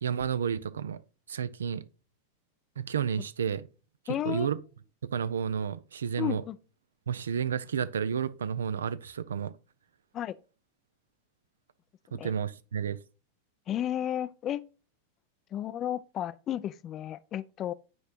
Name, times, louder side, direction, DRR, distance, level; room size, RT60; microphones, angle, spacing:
voice 1, 0.0-1.0 1.3-1.8 2.8-3.7 4.1-4.6 5.1-6.4 7.1-9.5 12.1-13.0, right 7 dB, 65° right, 0.5 m, -31 dB
voice 2, 4.1-4.5 6.2-6.6 10.1-10.4 12.2-12.3 13.7-14.6 15.5-17.7, left 11 dB, 30° left, 0.4 m, -33 dB
9.3 x 4.3 x 2.4 m
figure-of-eight pair, 90°, 0 cm